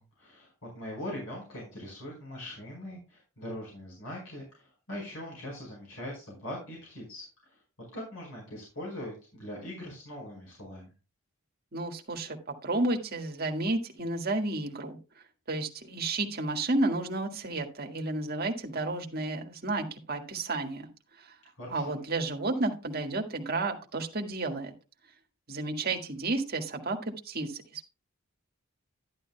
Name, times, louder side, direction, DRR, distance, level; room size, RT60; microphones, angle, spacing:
voice 1, 0.2-7.6 7.9-10.9 21.5-22.0, left 1 dB, 70° left, -3 dB, 5.0 m, -41 dB
voice 2, 11.7-12.4 12.6-15.0 15.5-20.9 21.2-21.3 21.7-24.7 25.5-27.0 27.3-27.9, right 2 dB, 45° right, 3 dB, 1.7 m, -31 dB
11.5 x 11.0 x 2.3 m, 0.32 s
head